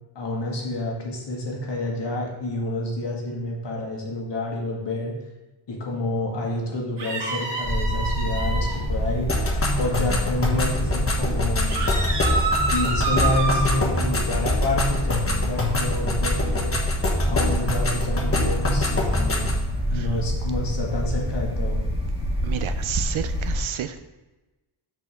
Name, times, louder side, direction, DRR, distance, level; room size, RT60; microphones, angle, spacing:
voice 1, 0.2-5.1 5.7-9.3 9.8-11.8 12.7-16.8 17.3-19.6 19.9-21.8, left 1 dB, 55° left, -1 dB, 1.8 m, -28 dB
sound 1, 7.0-8.8 11.7-13.7, right 3 dB, 55° right, 2.1 m, -27 dB
sound 2, 7.6-23.6, equal, 10° right, 1.6 m, -26 dB
sound 3, 9.3-19.6, left 2 dB, 25° left, 1.2 m, -27 dB
voice 2, 22.4-24.1, right 10 dB, 70° right, 10 dB, 0.6 m, -30 dB
6.1 x 5.2 x 5.1 m, 1.1 s
wide cardioid pair, 120°, 50 cm